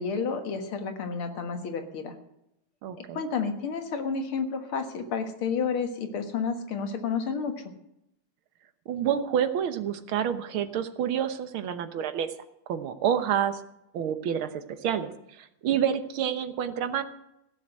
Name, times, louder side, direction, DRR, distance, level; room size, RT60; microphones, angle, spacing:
voice 1, 0.0-2.1 3.0-7.5, left 5 dB, 80° left, 6 dB, 2.4 m, -30 dB
voice 2, 2.8-3.2 8.9-12.3 12.7-13.6 13.9-15.1 15.4-17.0, right 9 dB, 75° right, 10 dB, 1.9 m, -28 dB
16.0 x 7.2 x 7.8 m, 0.82 s
omnidirectional pair, 2.3 m